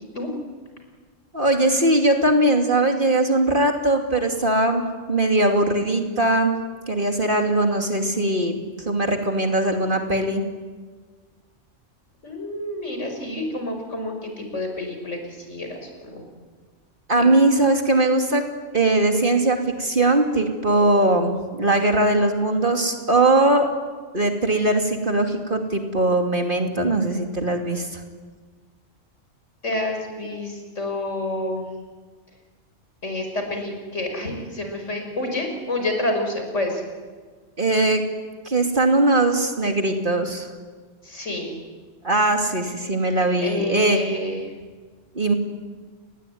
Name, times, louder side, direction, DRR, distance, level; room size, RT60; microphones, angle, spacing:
voice 1, 1.3-4.8 5.1-6.5 6.9-8.5 8.9-10.4 17.1-18.4 18.7-23.7 24.1-28.0 37.6-38.0 38.4-40.5 42.0-44.0 45.2-45.3, right 2 dB, 40° right, 3 dB, 2.8 m, -20 dB
voice 2, 12.2-16.3 17.2-17.3 29.6-31.7 33.0-36.8 41.0-41.5 43.4-44.4, left 1 dB, 65° left, 4 dB, 5.9 m, -28 dB
30.0 x 20.5 x 9.4 m, 1.5 s
omnidirectional pair, 1.3 m